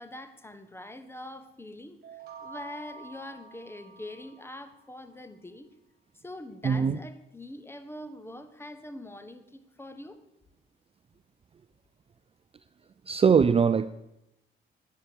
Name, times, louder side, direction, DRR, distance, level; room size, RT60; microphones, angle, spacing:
voice 1, 0.0-5.7 6.1-10.2, left 1 dB, 10° left, 1.4 m, -44 dB
sound 1, 2.0-4.8, right 4 dB, 50° right, 3.5 m, -47 dB
voice 2, 6.6-7.0 13.1-13.9, right 6 dB, 30° right, 0.5 m, -21 dB
11.5 x 9.6 x 7.2 m
cardioid pair, 90°, 20 cm